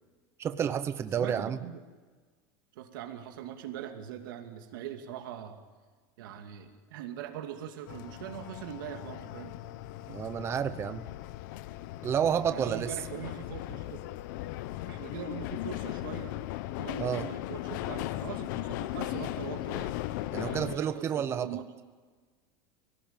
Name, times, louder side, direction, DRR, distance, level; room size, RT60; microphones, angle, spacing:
voice 1, 0.4-1.6 10.1-11.0 12.0-12.9 17.0-17.3 20.3-21.5, right 8 dB, 25° right, 10 dB, 0.9 m, -30 dB
voice 2, 1.2-1.8 2.7-5.6 6.2-9.5 10.1-10.2 12.5-14.0 14.9-16.3 16.8-20.0 20.4-21.6, right 9 dB, 90° right, 4 dB, 2.6 m, -41 dB
sound 1, 7.9-20.8, left 15 dB, 70° left, 1.0 m, -37 dB
29.5 x 17.5 x 9.0 m, 1.4 s
supercardioid pair, 150°, 11 cm